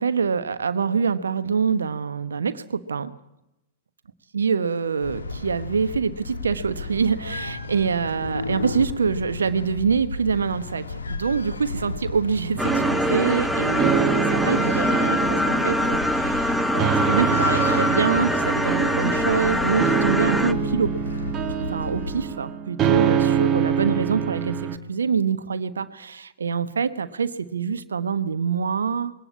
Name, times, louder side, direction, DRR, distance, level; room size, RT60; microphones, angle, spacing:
voice 1, 0.0-3.1 4.3-20.9 21.7-29.1, right 6 dB, 70° right, 12 dB, 1.1 m, -25 dB
sound 1, 5.0-22.2, left 3 dB, 70° left, 2.5 m, -34 dB
sound 2, 12.6-20.5, left 1 dB, ahead, 1.0 m, -24 dB
sound 3, 12.6-24.8, right 8 dB, 25° right, 1.9 m, -26 dB
23.0 x 18.0 x 8.6 m, 0.88 s
figure-of-eight pair, 95°, 0 cm